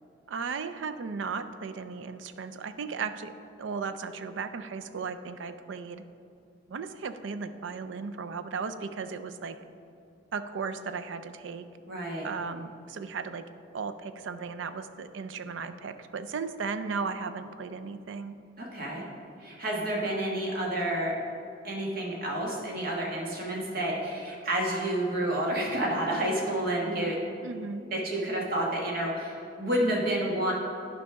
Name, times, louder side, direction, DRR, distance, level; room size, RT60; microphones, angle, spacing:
voice 1, 0.3-3.3 3.6-6.0 6.7-9.6 10.3-11.7 12.2-13.4 13.7-18.4 27.4-27.8, right 5 dB, 90° right, 10 dB, 0.4 m, -36 dB
voice 2, 11.9-12.3 18.6-19.0 19.4-21.1 21.6-27.2 27.9-30.5, right 1 dB, 55° right, -2 dB, 1.5 m, -29 dB
12.0 x 5.2 x 3.4 m, 2.6 s
head